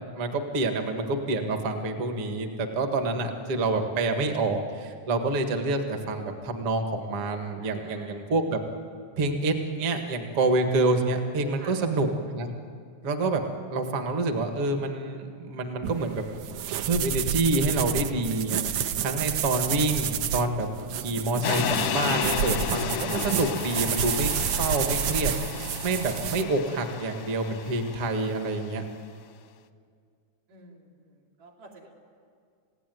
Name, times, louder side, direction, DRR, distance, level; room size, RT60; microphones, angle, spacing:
voice 1, 0.0-8.6 9.2-12.5 13.0-13.4 13.7-16.3 16.9-28.8, right 2 dB, 50° right, 5 dB, 2.5 m, -27 dB
voice 2, 7.6-8.3 11.6-11.8 19.0-19.3 25.7-26.0 30.5-31.9, right 3 dB, 90° right, -2 dB, 4.9 m, -49 dB
sound 1, 15.8-26.4, right 8 dB, 75° right, 1.7 m, -30 dB
sound 2, 21.4-28.5, left 9 dB, 70° left, 1.4 m, -32 dB
30.0 x 16.5 x 9.4 m, 2.2 s
omnidirectional pair, 3.7 m